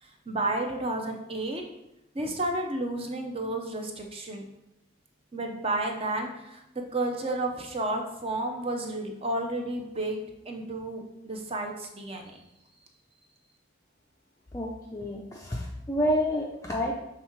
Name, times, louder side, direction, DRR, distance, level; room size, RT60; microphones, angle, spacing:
voice 1, 0.0-1.6 2.1-4.5 5.3-6.6 6.9-12.4, right 2 dB, 30° right, 3 dB, 0.7 m, -32 dB
voice 2, 14.5-17.0, equal, 15° left, -2 dB, 0.4 m, -29 dB
6.2 x 3.6 x 4.4 m, 0.88 s
head